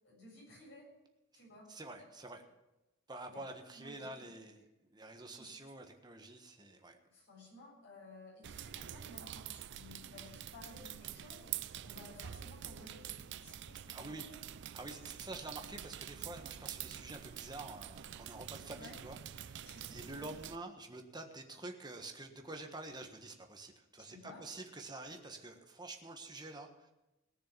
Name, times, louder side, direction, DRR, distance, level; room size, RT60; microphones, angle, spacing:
voice 1, 0.0-0.9 1.3-1.7 2.0-2.1 3.2-3.5 3.7-4.3 5.3-5.6 7.1-11.6 11.8-14.3 15.3-15.5 18.8-19.0 19.6-20.3 24.0-24.4, left 2 dB, 60° left, -3 dB, 6.8 m, -56 dB
voice 2, 1.7-2.4 3.1-7.0 13.9-14.3 14.7-26.9, right 2 dB, 20° right, 4 dB, 1.5 m, -48 dB
sound 1, 8.4-20.6, right 10 dB, 60° right, 0.5 m, -47 dB
19.0 x 6.7 x 7.3 m, 0.99 s
head